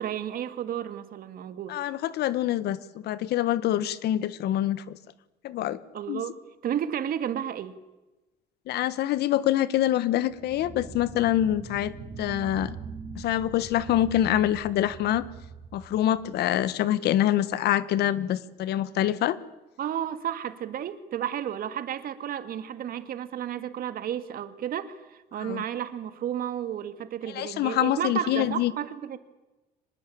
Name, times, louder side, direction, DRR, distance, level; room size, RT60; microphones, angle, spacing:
voice 1, 0.0-1.8 5.9-6.3 6.6-7.8 19.8-29.2, right 10 dB, 60° right, 2.1 m, -32 dB
voice 2, 1.7-5.0 5.4-5.8 6.1-6.2 8.7-11.9 12.2-12.8 13.1-15.2 15.7-19.4 25.4-25.6 27.3-28.7, left 12 dB, 75° left, 1.5 m, -25 dB
sound 1, 10.3-16.8, right 5 dB, 35° right, 3.9 m, -42 dB
25.0 x 20.0 x 8.7 m
cardioid pair, 110°, 17 cm